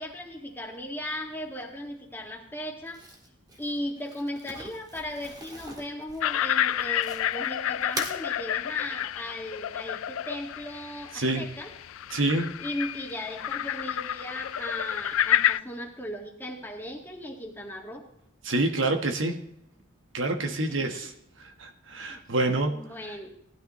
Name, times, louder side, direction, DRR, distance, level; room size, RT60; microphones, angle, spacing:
voice 1, 0.0-3.0 3.6-11.7 12.6-18.0 20.5-21.1 22.1-22.2 22.7-23.3, left 1 dB, 10° left, 1 dB, 1.9 m, -37 dB
Crumpling crinkling, 2.9-7.5 7.8-8.2, right 1 dB, 20° right, 1.8 m, -41 dB
sound 1, 6.2-15.6, left 11 dB, 85° left, 0.4 m, -29 dB
voice 2, 11.1-11.5 12.1-12.5 18.4-19.4 20.1-21.1 21.6-22.7 23.1-23.2, right 2 dB, 65° right, 5 dB, 1.3 m, -27 dB
18.0 x 12.5 x 3.1 m, 0.74 s
head